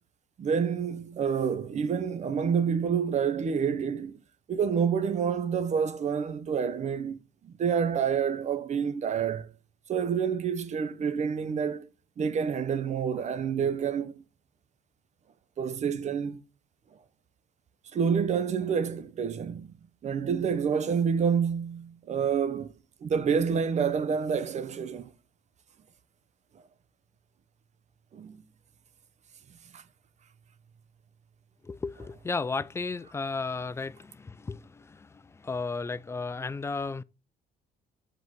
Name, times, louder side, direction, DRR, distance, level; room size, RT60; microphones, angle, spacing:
voice 1, 0.4-4.2 4.5-7.2 7.4-9.5 9.9-11.9 12.2-14.2 15.6-16.4 17.9-19.7 20.0-22.7 23.0-25.1 28.1-28.4 29.7-29.8, right 7 dB, 45° right, 0.8 m, -28 dB
voice 2, 31.6-37.0, left 4 dB, 15° left, 0.3 m, -34 dB
7.7 x 4.0 x 4.7 m
cardioid pair, 110°, 17 cm